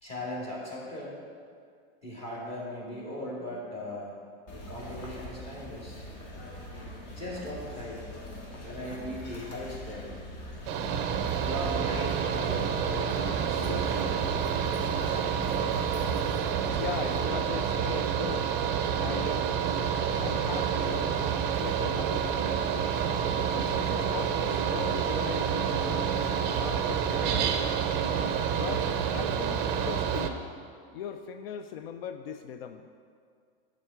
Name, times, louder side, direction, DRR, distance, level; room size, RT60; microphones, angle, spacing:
voice 1, 0.0-1.2 2.0-4.2 4.5-6.0 7.1-8.0 8.6-10.1 11.4-13.1 13.5-14.3, left 1 dB, 20° left, -6 dB, 2.1 m, -38 dB
sound 1, 4.5-17.3, left 1 dB, 35° left, 1.3 m, -41 dB
Mechanical fan, 10.7-30.3, right 7 dB, 35° right, 0.5 m, -28 dB
voice 2, 16.8-18.5 19.0-19.6 20.1-21.2 21.4-22.7 23.5-26.2 26.5-27.6 28.5-30.4 30.9-32.9, left 8 dB, 85° left, 8 dB, 0.5 m, -39 dB
8.5 x 3.7 x 6.7 m, 2.2 s
supercardioid pair, 150°, 29 cm